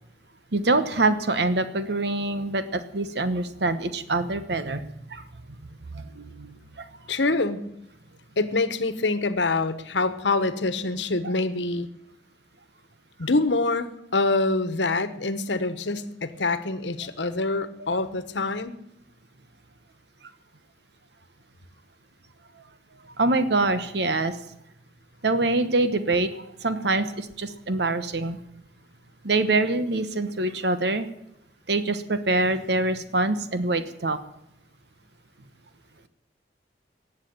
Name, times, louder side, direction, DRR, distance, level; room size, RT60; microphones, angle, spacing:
voice 1, 0.5-4.8 5.1-5.2 5.9-6.9 17.9-18.0 23.2-24.4 25.2-28.4 29.2-31.1 31.7-34.2, right 2 dB, 65° right, 11 dB, 1.1 m, -25 dB
voice 2, 7.1-7.7 8.4-11.9 13.2-18.8, left 3 dB, 90° left, 12 dB, 1.2 m, -25 dB
18.5 x 7.5 x 8.9 m, 0.80 s
head